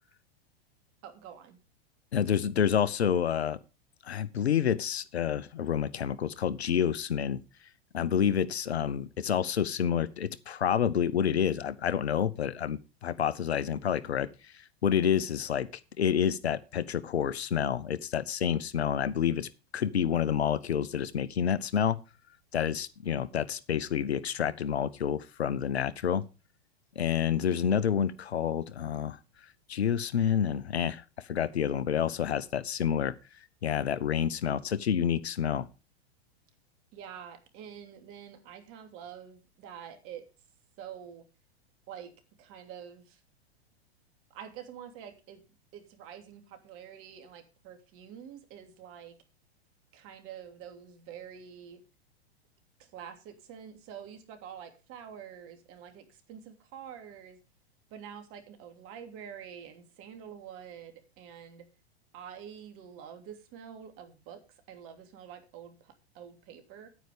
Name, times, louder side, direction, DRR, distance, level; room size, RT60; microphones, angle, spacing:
voice 1, 1.0-1.6 36.9-40.2 40.8-41.2 41.9-42.1 42.4-43.2 44.3-45.4 45.7-49.2 49.9-51.8 52.8-57.4 57.9-61.7 62.1-66.9, right 8 dB, 45° right, 2.9 m, -47 dB
voice 2, 2.1-3.6 4.0-7.4 7.9-14.3 14.8-15.7 16.0-22.0 22.5-26.2 27.0-29.2 29.7-33.2 33.6-35.7, left 8 dB, 80° left, 1.0 m, -28 dB
9.5 x 9.5 x 5.1 m
hypercardioid pair, 100°, 32 cm